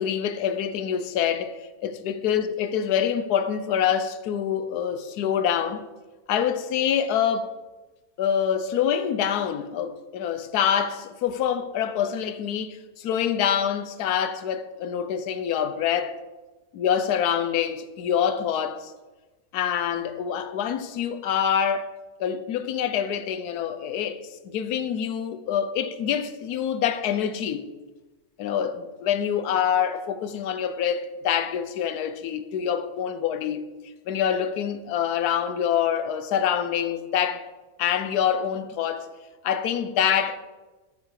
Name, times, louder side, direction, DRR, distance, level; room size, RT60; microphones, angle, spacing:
voice 1, 0.0-5.8 6.3-7.5 8.2-16.2 16.7-18.9 19.5-21.9 22.2-27.7 28.4-33.6 34.1-37.5 37.8-39.1 39.4-40.4, left 8 dB, 70° left, 1.2 m, -26 dB
12.0 x 7.0 x 4.8 m
omnidirectional pair, 1.7 m